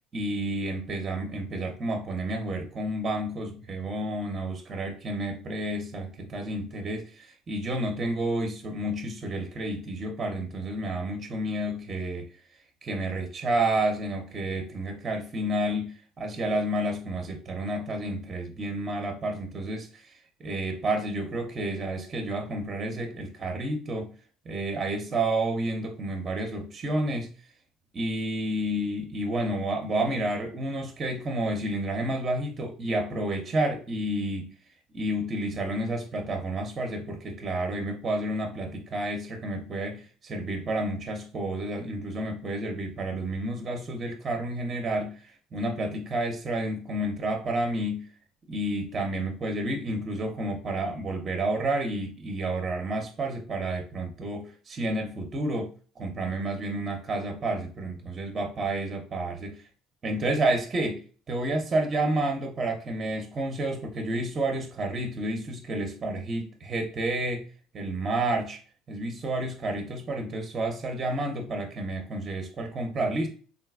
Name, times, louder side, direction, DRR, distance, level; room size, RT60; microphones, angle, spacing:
voice 1, 0.1-12.3 12.8-20.1 20.4-24.1 24.4-27.3 27.9-34.5 34.9-48.0 48.5-59.6 60.0-67.5 67.7-68.6 68.9-73.3, right 1 dB, 35° right, 3 dB, 0.7 m, -30 dB
3.8 x 2.3 x 2.3 m, 0.40 s
hypercardioid pair, 75°, 0 cm